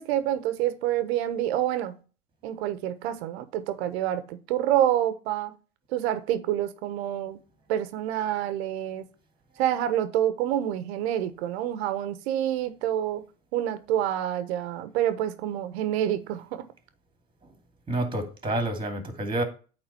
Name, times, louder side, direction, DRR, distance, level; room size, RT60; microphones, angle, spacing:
voice 1, 0.0-1.9 2.4-5.5 5.9-7.4 7.7-9.0 9.6-13.2 13.5-16.6, right 11 dB, 75° right, 1.3 m, -27 dB
voice 2, 17.9-19.4, right 1 dB, 15° right, 2.5 m, -28 dB
9.0 x 3.9 x 5.4 m
supercardioid pair, 100°, 32 cm